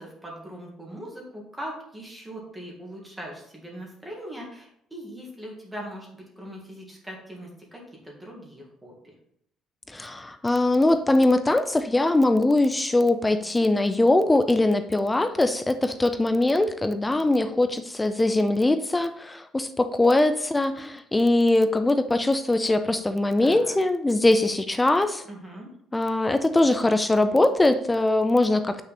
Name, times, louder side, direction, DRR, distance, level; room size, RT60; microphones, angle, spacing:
voice 1, 0.0-8.9 23.4-23.8 25.3-25.7, equal, 10° right, -2 dB, 2.2 m, -40 dB
voice 2, 9.9-25.2 25.9-28.8, left 2 dB, 10° left, 9 dB, 0.5 m, -22 dB
8.1 x 6.0 x 4.2 m, 0.70 s
cardioid pair, 145°, 0 cm